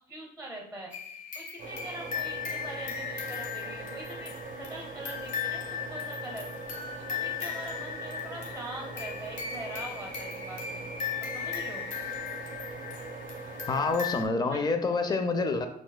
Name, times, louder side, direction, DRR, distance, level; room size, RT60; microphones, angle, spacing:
voice 1, 0.1-0.9 1.3-4.3 4.6-6.5 6.9-10.8 11.2-11.9 14.4-14.6, right 1 dB, ahead, -1 dB, 0.9 m, -43 dB
sound 1, 0.9-14.2, left 7 dB, 50° left, 0.9 m, -37 dB
sound 2, 1.6-13.9, right 3 dB, 55° right, 0.6 m, -42 dB
voice 2, 13.7-15.7, left 3 dB, 25° left, 6 dB, 0.5 m, -27 dB
6.0 x 2.4 x 2.2 m, 0.73 s
cardioid pair, 110°, 17 cm